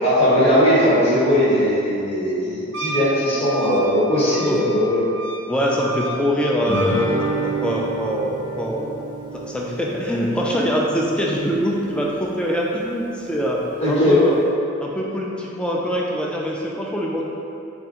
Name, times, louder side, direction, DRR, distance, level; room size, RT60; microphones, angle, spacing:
voice 1, 0.0-5.0 13.8-14.2, equal, 30° left, -10 dB, 0.9 m, -18 dB
Wind instrument woodwind instrument, 2.7-7.0, right 1 dB, 70° right, 0.5 m, -32 dB
voice 2, 5.5-8.9 9.3-14.4 14.8-17.3, equal, 5° left, -3 dB, 0.3 m, -23 dB
Guitar, 6.7-11.7, right 2 dB, 70° left, 1.2 m, -30 dB
4.0 x 2.5 x 3.6 m, 2.9 s
head